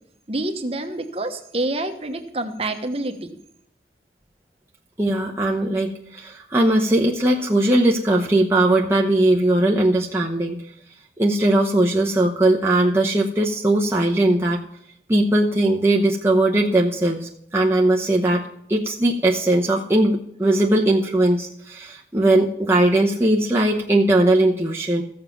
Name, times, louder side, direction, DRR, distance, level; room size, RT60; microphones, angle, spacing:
voice 1, 0.3-3.3, right 2 dB, 35° right, 6 dB, 1.1 m, -27 dB
voice 2, 5.0-10.6 11.2-14.7 15.1-25.0, right 1 dB, 15° right, -2 dB, 0.8 m, -19 dB
15.0 x 7.1 x 5.9 m, 0.73 s
head